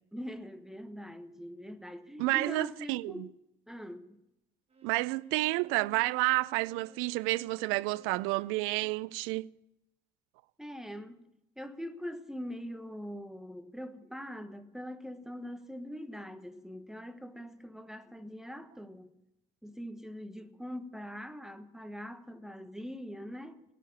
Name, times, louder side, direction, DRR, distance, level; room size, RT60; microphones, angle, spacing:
voice 1, 0.1-3.3 3.7-4.2 10.6-11.3 11.6-19.1 19.6-23.6, equal, ahead, 1.1 m, -43 dB
voice 2, 2.2-3.3 4.8-9.5, right 21 dB, 70° right, 0.4 m, -30 dB
Bowed string instrument, 4.7-9.0, right 6 dB, 30° right, 1.9 m, -57 dB
17.0 x 6.8 x 9.5 m
supercardioid pair, 75°, 21 cm